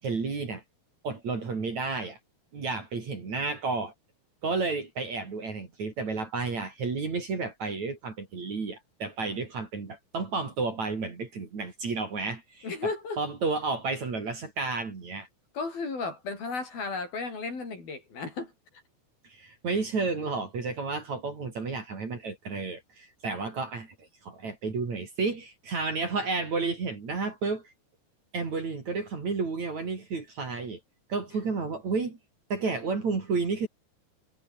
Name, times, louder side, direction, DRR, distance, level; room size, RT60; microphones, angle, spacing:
voice 1, 0.0-0.6 1.0-2.2 2.5-3.9 4.4-12.7 13.2-15.3 19.2-27.7 28.3-30.8 31.1-32.2 32.5-33.7, right 4 dB, 40° right, 5.0 m, -31 dB
voice 2, 12.6-13.2 15.6-18.5 20.2-20.3, left 4 dB, 55° left, 8.8 m, -34 dB
omnidirectional pair, 5.2 m